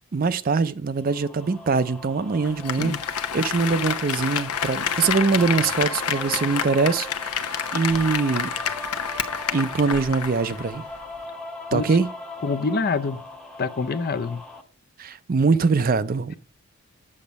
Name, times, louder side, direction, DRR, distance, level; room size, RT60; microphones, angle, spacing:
voice 1, 0.1-3.0 3.3-8.5 9.5-10.8 11.7-12.1 15.0-16.4, right 4 dB, 40° right, 0.4 m, -23 dB
sound 1, 1.0-14.6, left 1 dB, 5° left, 0.8 m, -38 dB
Applause, 2.4-10.6 11.0-11.1, left 8 dB, 90° left, 0.9 m, -29 dB
voice 2, 12.4-13.2 13.6-14.4, left 4 dB, 45° left, 0.5 m, -25 dB
8.6 x 7.1 x 5.2 m
head